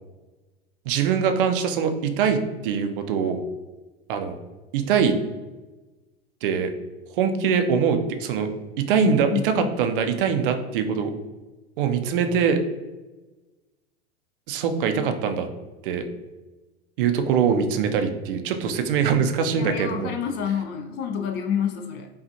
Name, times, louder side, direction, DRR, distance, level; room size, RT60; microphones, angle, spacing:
voice 1, 0.9-3.4 4.1-4.3 4.7-5.2 6.4-6.7 7.1-8.5 8.8-11.1 11.8-12.6 14.5-15.5 15.8-16.1 17.0-20.1, right 7 dB, 55° right, 7 dB, 0.6 m, -23 dB
voice 2, 8.9-9.7 19.5-22.1, left 8 dB, 30° left, 5 dB, 0.5 m, -28 dB
5.1 x 2.4 x 2.7 m, 1.2 s
hypercardioid pair, 95°, 32 cm